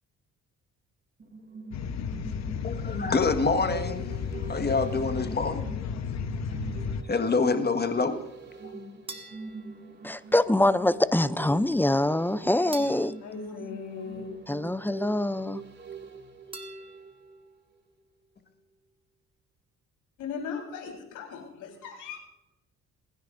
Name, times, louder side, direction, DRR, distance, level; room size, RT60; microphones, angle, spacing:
sound 1, 1.2-17.4 17.8-17.9, right 5 dB, 35° right, 2.7 m, -44 dB
sound 2, 1.7-7.0, left 6 dB, 60° left, 1.0 m, -33 dB
voice 1, 2.6-4.1 4.5-5.7 7.1-8.2 8.6-8.9, left 4 dB, 35° left, 1.6 m, -26 dB
sound 3, 9.1-10.6 12.7-14.6 16.5-17.7, right 2 dB, 15° right, 1.7 m, -46 dB
voice 2, 10.0-13.1 14.5-15.6, left 1 dB, 5° left, 0.5 m, -24 dB
voice 3, 12.8-14.5 20.2-22.2, left 6 dB, 90° left, 4.2 m, -38 dB
27.5 x 10.5 x 2.6 m
cardioid pair, 90°, 30 cm